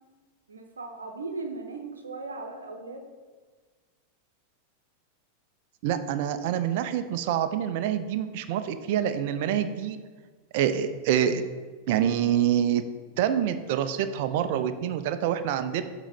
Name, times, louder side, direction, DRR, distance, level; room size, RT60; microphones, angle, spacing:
voice 1, 0.5-3.0, right 3 dB, 75° right, 4 dB, 0.8 m, -37 dB
voice 2, 5.8-10.0 10.5-11.4 11.9-12.8 13.2-15.8, right 10 dB, 50° right, 10 dB, 0.4 m, -26 dB
7.2 x 2.9 x 5.0 m, 1.4 s
figure-of-eight pair, 90°, 0 cm